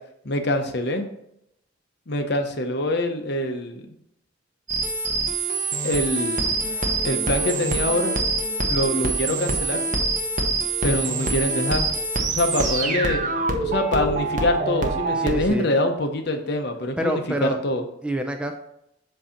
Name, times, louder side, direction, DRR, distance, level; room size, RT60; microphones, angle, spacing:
voice 1, 0.2-1.1 2.1-3.9 5.8-6.6 7.0-8.2 8.7-9.8 10.8-11.9 12.3-13.3 13.6-17.8, left 1 dB, 55° left, 6 dB, 0.8 m, -24 dB
sound 1, 4.7-15.5, right 3 dB, 40° right, 0.8 m, -25 dB
sound 2, 6.4-14.1, left 5 dB, 25° left, 2.5 m, -40 dB
voice 2, 15.1-15.7 17.0-17.6 18.0-18.6, right 1 dB, 5° right, 4 dB, 0.4 m, -26 dB
7.6 x 2.8 x 5.7 m, 0.79 s
head